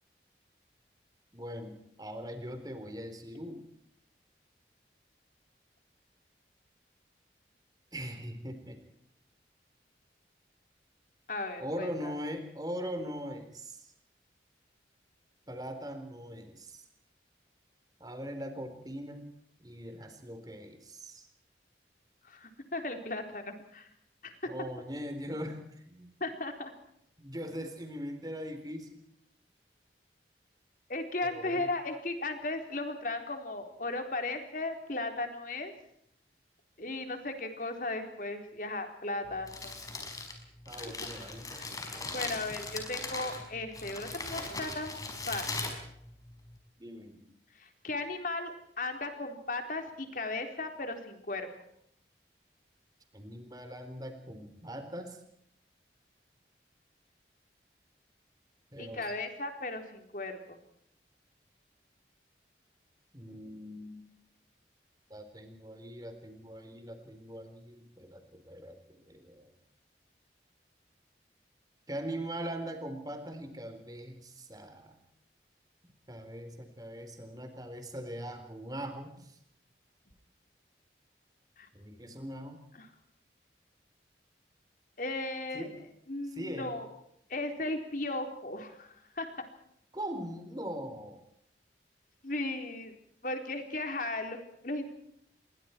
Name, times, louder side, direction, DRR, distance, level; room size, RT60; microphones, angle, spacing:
voice 1, 1.3-3.6 7.9-8.8 11.6-13.9 15.5-16.8 18.0-19.3 19.6-21.3 24.5-26.1 27.2-29.0 31.2-31.7 40.7-41.5 46.8-47.2 53.1-55.2 58.7-59.1 63.1-64.0 65.1-69.5 71.9-75.0 76.1-79.4 81.7-82.6 85.5-85.8 86.3-86.7 89.9-91.2, equal, 20° right, 7 dB, 3.9 m, -41 dB
voice 2, 11.3-11.9 22.2-23.9 24.2-24.3 26.2-26.7 30.9-35.7 36.8-39.7 40.8-40.9 41.5-44.9 45.3-45.7 47.6-51.5 58.8-60.6 81.6-81.7 82.8-82.9 85.0-85.7 86.1-86.9 87.3-89.3 92.2-92.9 93.2-94.9, left 2 dB, 50° left, 5 dB, 4.0 m, -36 dB
Crumpling crinkling, 39.3-46.6, left 3 dB, 20° left, 5.2 m, -40 dB
28.0 x 23.0 x 4.6 m, 0.72 s
head